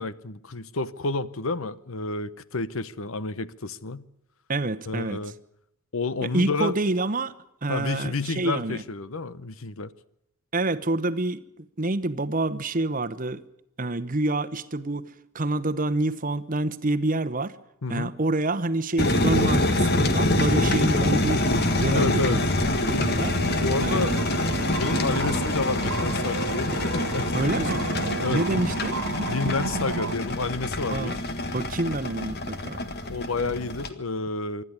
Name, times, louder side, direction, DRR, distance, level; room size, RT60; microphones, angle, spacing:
voice 1, 0.0-4.0 4.9-5.3 5.9-6.7 7.7-9.9 17.8-18.1 21.9-22.4 23.6-27.5 28.2-28.7 29.3-31.2 33.1-34.6, left 3 dB, 75° left, 0.9 m, -30 dB
voice 2, 4.5-5.2 6.2-7.4 7.6-8.8 10.5-13.4 13.8-17.5 17.9-22.4 22.8-23.3 23.8-24.2 25.1-25.3 27.3-27.9 28.3-29.0 30.9-31.2 31.5-32.8, right 2 dB, 40° right, 1.0 m, -27 dB
sound 1, 19.0-33.9, left 2 dB, 50° left, 1.7 m, -26 dB
sound 2, 21.4-30.2, right 4 dB, 65° right, 0.7 m, -33 dB
25.5 x 12.5 x 9.6 m
head